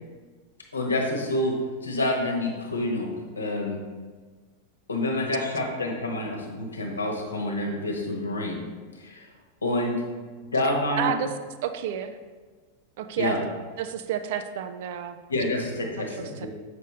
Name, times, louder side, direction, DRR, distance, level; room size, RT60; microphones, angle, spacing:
voice 1, 0.7-3.8 4.9-8.6 9.0-9.2 9.6-10.0 10.5-11.1 13.2-13.4 15.3-16.5, left 1 dB, 75° left, 1 dB, 1.0 m, -28 dB
voice 2, 11.0-11.3 11.6-12.2 13.0-13.5 13.8-15.2 16.2-16.5, right 9 dB, 50° right, 9 dB, 0.4 m, -30 dB
6.5 x 5.0 x 3.2 m, 1.4 s
figure-of-eight pair, 90°, 0 cm